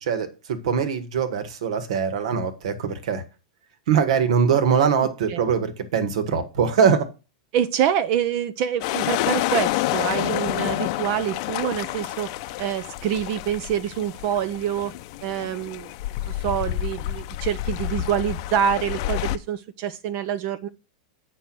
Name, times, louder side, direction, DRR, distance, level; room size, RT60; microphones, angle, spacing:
voice 1, 0.0-3.2 3.9-7.1, right 6 dB, 70° right, 1.7 m, -22 dB
voice 2, 7.5-12.3 12.6-14.9 15.2-15.9 16.2-20.7, right 9 dB, 50° right, 0.7 m, -26 dB
sound 1, 8.8-19.4, left 15 dB, 55° left, 0.6 m, -28 dB
9.2 x 4.5 x 6.1 m
hypercardioid pair, 115°, 3 cm